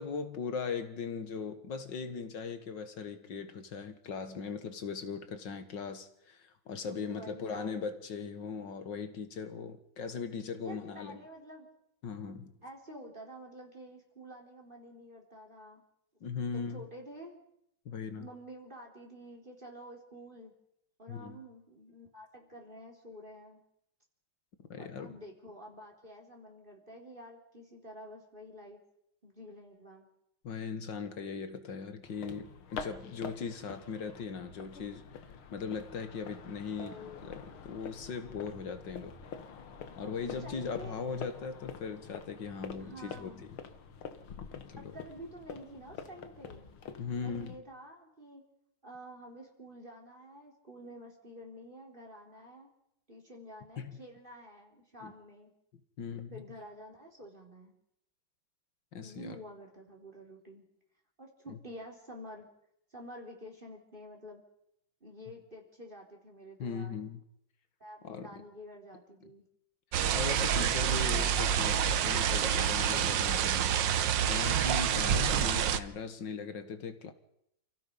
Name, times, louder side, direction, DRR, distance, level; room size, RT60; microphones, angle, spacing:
voice 1, 0.0-11.3 12.0-12.5 16.2-16.9 17.9-18.3 21.1-21.4 24.7-25.1 30.4-35.0 35.5-36.9 37.2-39.2 40.0-43.5 44.5-45.0 47.0-47.6 53.8-54.0 55.0-55.1 56.0-56.4 58.9-59.4 61.5-61.6 66.6-67.2 68.0-68.4 70.1-73.9 74.2-77.1, left 5 dB, 60° left, 2.2 m, -39 dB
voice 2, 6.9-7.8 10.6-11.7 12.6-15.8 16.5-17.4 18.2-20.5 21.0-23.6 24.8-28.8 29.2-30.1 36.8-37.4 40.0-40.1 40.4-41.0 42.8-43.5 44.8-46.7 47.1-48.4 48.8-52.7 53.1-55.5 56.3-57.7 59.0-60.6 61.2-62.5 62.9-64.4 65.0-67.0 67.8-69.4, equal, 25° right, 4.1 m, -49 dB
sound 1, 32.0-47.6, left 6 dB, 90° left, 2.3 m, -47 dB
sound 2, 69.9-75.8, right 9 dB, 65° right, 1.5 m, -28 dB
29.0 x 16.5 x 5.5 m
omnidirectional pair, 2.2 m